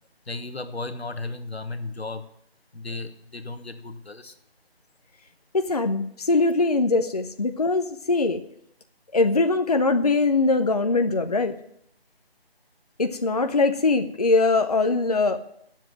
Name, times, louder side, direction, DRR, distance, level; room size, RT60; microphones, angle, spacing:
voice 1, 0.3-2.3 2.7-4.3, left 3 dB, 90° left, 9 dB, 1.3 m, -35 dB
voice 2, 5.5-8.4 9.1-11.5 13.0-15.4, left 3 dB, 40° left, 7 dB, 0.7 m, -22 dB
9.5 x 7.5 x 9.0 m, 0.74 s
figure-of-eight pair, 165°, 31 cm